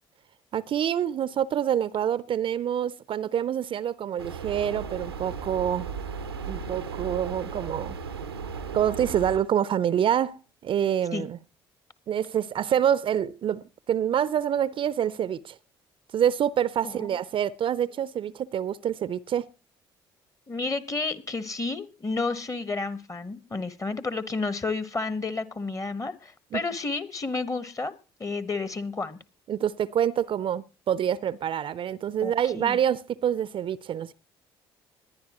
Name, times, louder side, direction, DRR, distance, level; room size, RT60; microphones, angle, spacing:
voice 1, 0.5-5.9 6.5-8.0 8.7-11.4 12.1-15.6 16.1-19.5 26.5-26.6 29.5-34.1, right 9 dB, 45° right, 0.6 m, -26 dB
sound 1, 4.2-9.4, right 5 dB, 90° right, 0.7 m, -36 dB
voice 2, 16.8-17.2 20.5-27.9 28.2-29.2 32.2-32.8, left 3 dB, 25° left, 1.2 m, -31 dB
20.5 x 10.5 x 3.0 m
figure-of-eight pair, 50°, 13 cm